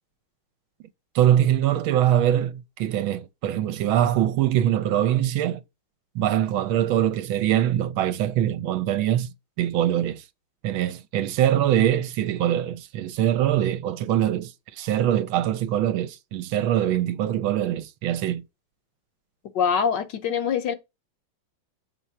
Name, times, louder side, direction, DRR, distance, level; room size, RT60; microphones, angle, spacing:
voice 1, 1.1-5.6 6.1-9.3 9.6-10.2 10.6-18.4, right 11 dB, 80° right, 1.4 m, -23 dB
voice 2, 19.5-20.7, left 7 dB, 65° left, 1.3 m, -24 dB
7.3 x 3.2 x 5.8 m
omnidirectional pair, 2.3 m